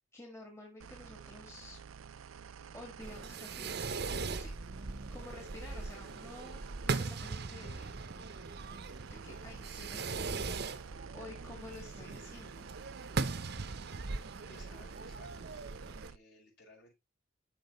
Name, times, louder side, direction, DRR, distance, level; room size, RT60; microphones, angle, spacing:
voice 1, 0.1-1.8 2.7-4.0 4.4-8.0 9.1-10.4 10.7-12.7, left 2 dB, 15° left, 1.7 m, -51 dB
sound 1, 0.8-16.2, right 6 dB, 85° right, 0.4 m, -51 dB
Fireworks, 3.0-16.1, right 4 dB, 50° right, 0.7 m, -40 dB
voice 2, 14.5-15.8 16.1-17.0, left 2 dB, 55° left, 5.0 m, -59 dB
12.5 x 4.9 x 3.0 m
head